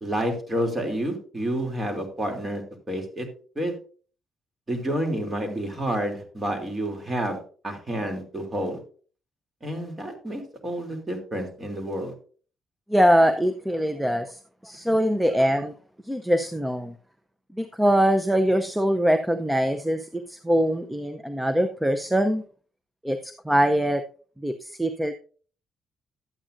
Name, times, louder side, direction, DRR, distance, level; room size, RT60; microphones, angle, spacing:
voice 1, 0.0-3.3 3.5-3.8 4.7-7.4 7.6-8.8 9.6-12.1 14.8-14.9, right 1 dB, 25° right, 3 dB, 2.8 m, -29 dB
voice 2, 12.9-15.7 16.1-16.9 17.6-22.4 23.0-24.0 24.4-25.1, equal, 5° right, 9 dB, 0.6 m, -23 dB
12.0 x 8.8 x 2.6 m, 0.42 s
cardioid pair, 90°, 0 cm